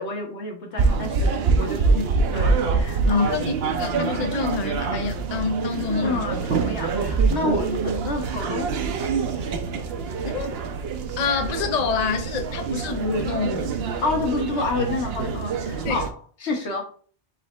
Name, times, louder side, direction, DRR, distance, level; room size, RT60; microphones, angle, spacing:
voice 1, 0.0-2.0 2.3-3.4 6.0-8.7 14.0-16.9, left 3 dB, 80° left, 1.5 m, -29 dB
sound 1, 0.8-16.1, right 4 dB, 70° right, 0.9 m, -25 dB
voice 2, 3.1-6.4 10.3-10.5 11.2-13.7 15.8-16.0, left 5 dB, 45° left, 0.7 m, -26 dB
4.1 x 3.9 x 3.2 m
omnidirectional pair, 1.1 m